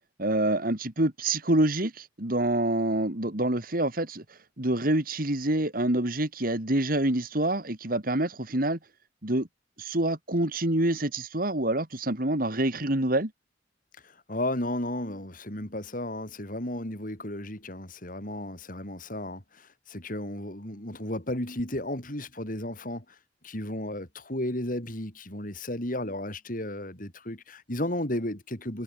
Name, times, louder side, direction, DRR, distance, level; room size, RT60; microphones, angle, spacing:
voice 1, 0.2-4.2 4.6-8.8 9.2-9.5 9.8-13.3, right 1 dB, 55° right, 2.8 m, -26 dB
voice 2, 14.0-23.2 23.4-28.8, left 1 dB, 50° left, 4.9 m, -34 dB
head